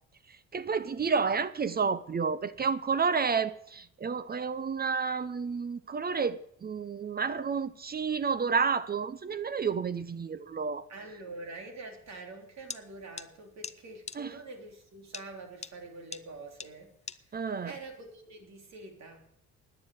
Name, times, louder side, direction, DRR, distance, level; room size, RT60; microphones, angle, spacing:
voice 1, 0.5-10.9 14.2-14.3 17.3-17.8, right 5 dB, 30° right, 0.6 m, -30 dB
voice 2, 10.9-16.9 17.3-19.2, right 2 dB, 60° right, 3.4 m, -46 dB
sound 1, 12.7-12.8 13.2-13.3 13.6-13.7 14.1-14.2 15.1-15.2 15.6-15.7 16.1-16.2 16.6-16.7 17.1-17.2, left 5 dB, 20° left, 0.6 m, -39 dB
9.8 x 9.5 x 8.7 m
cardioid pair, 90°, 30 cm